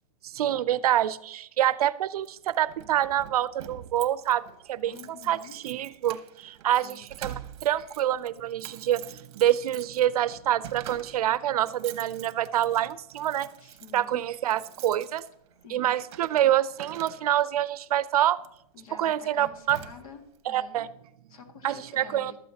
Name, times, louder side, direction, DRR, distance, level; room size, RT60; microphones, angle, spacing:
voice 1, 0.2-4.4 4.7-5.0 5.3-7.3 7.6-13.5 13.9-15.2 15.7-18.4 19.0-19.8 20.5-20.9 21.6-22.3, right 12 dB, 75° right, 17 dB, 0.5 m, -26 dB
Keys jangling, 2.2-17.6 18.4-18.6 19.1-19.2 19.4-20.4, right 11 dB, 45° right, 0.9 m, -46 dB
voice 2, 4.9-5.6 6.8-7.1 13.6-14.2 15.6-16.0 18.7-20.2 20.5-20.8 21.3-22.4, left 6 dB, 65° left, 4 dB, 2.1 m, -48 dB
14.0 x 12.5 x 2.8 m, 0.77 s
supercardioid pair, 175°, 19 cm